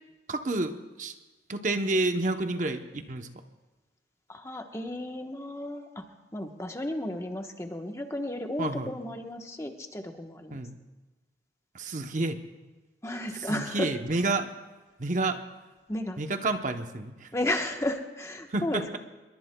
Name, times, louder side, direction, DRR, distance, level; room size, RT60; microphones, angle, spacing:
voice 1, 0.3-1.1 1.5-3.3 8.6-8.9 10.5-10.8 11.7-12.4 13.5-14.5 15.0-15.4 16.2-17.3 18.5-19.0, right 2 dB, 45° right, 7 dB, 0.8 m, -29 dB
voice 2, 4.3-6.1 6.3-10.6 13.0-13.9 15.9-16.2 17.3-19.0, left 1 dB, 15° left, 4 dB, 1.1 m, -33 dB
27.5 x 22.0 x 2.3 m, 1.1 s
head